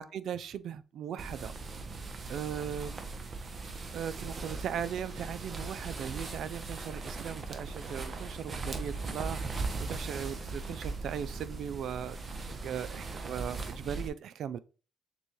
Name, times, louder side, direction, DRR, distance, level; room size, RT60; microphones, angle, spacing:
voice 1, 0.0-1.5 2.3-3.0 3.9-12.2 12.6-14.6, right 9 dB, 70° right, 0.3 m, -38 dB
sound 1, 1.2-14.1, right 3 dB, 40° right, 0.7 m, -39 dB
6.7 x 2.3 x 3.0 m
cardioid pair, 90°, 0 cm